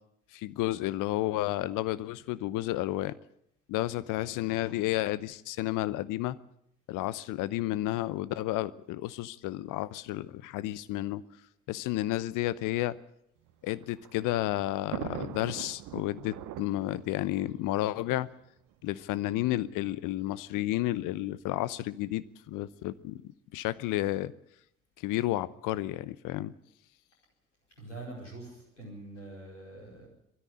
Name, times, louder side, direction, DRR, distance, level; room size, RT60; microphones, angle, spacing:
voice 1, 0.3-3.2 3.7-6.4 6.9-11.2 11.7-13.0 13.6-18.3 18.8-23.2 23.5-24.3 25.0-26.5, left 16 dB, 60° left, 17 dB, 0.9 m, -31 dB
Thunder, 13.5-18.8 19.6-19.7 19.9-20.0 21.1-21.4, right 13 dB, 60° right, 1.0 m, -43 dB
voice 2, 27.8-30.1, right 2 dB, 90° left, -2 dB, 4.9 m, -44 dB
20.0 x 13.5 x 9.7 m, 0.77 s
figure-of-eight pair, 45°, 35 cm